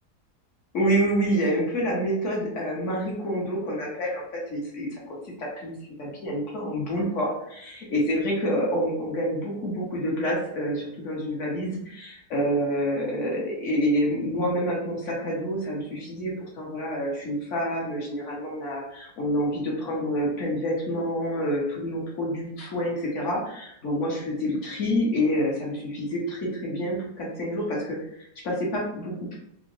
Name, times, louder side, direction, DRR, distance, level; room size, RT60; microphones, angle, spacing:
voice 1, 0.7-29.4, equal, 50° left, -3 dB, 1.2 m, -28 dB
3.8 x 2.1 x 2.6 m, 0.74 s
omnidirectional pair, 1.8 m